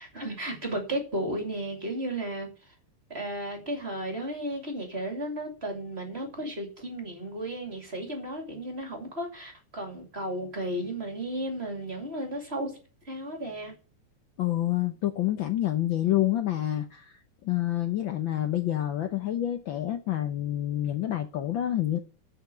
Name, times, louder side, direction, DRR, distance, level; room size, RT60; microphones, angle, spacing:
voice 1, 0.0-2.7 3.1-12.7 13.0-13.8, right 1 dB, 20° right, 2.5 m, -34 dB
voice 2, 14.4-17.1 17.4-22.0, left 13 dB, 85° left, 1.0 m, -28 dB
15.0 x 5.8 x 5.8 m
omnidirectional pair, 3.3 m